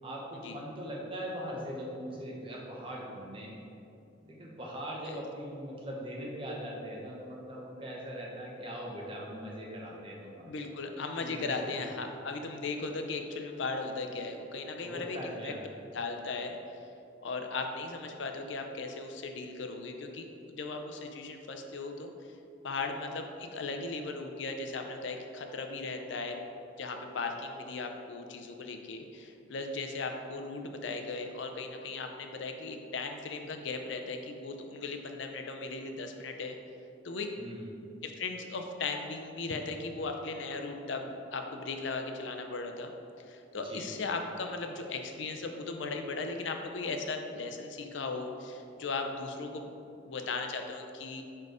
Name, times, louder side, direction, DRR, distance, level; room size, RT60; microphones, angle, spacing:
voice 1, 0.0-3.6 4.2-10.6 11.1-11.8 14.8-15.7 37.4-37.7 43.6-44.0, equal, 25° right, -3 dB, 0.9 m, -41 dB
voice 2, 10.5-15.2 15.4-15.5 15.9-16.8 17.2-22.1 22.6-26.4 26.8-36.6 37.0-37.3 38.0-42.9 43.3-49.7 50.1-51.2, left 3 dB, 75° left, 4 dB, 0.5 m, -37 dB
4.9 x 4.5 x 4.7 m, 2.6 s
head